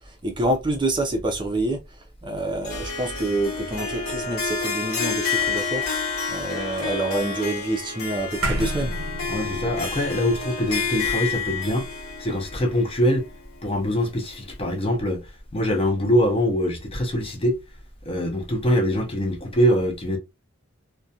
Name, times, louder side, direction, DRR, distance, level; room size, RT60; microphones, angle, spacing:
voice 1, 0.2-1.8 2.2-5.8 6.3-8.9, right 1 dB, 25° right, 0.5 m, -27 dB
Harp, 2.6-13.9, left 5 dB, 85° left, 0.8 m, -29 dB
sound 1, 8.4-13.0, right 1 dB, 75° right, 0.6 m, -32 dB
voice 2, 9.3-11.9 12.2-13.3 13.6-17.6 18.1-20.2, equal, 25° left, 0.6 m, -23 dB
2.4 x 2.2 x 2.7 m
head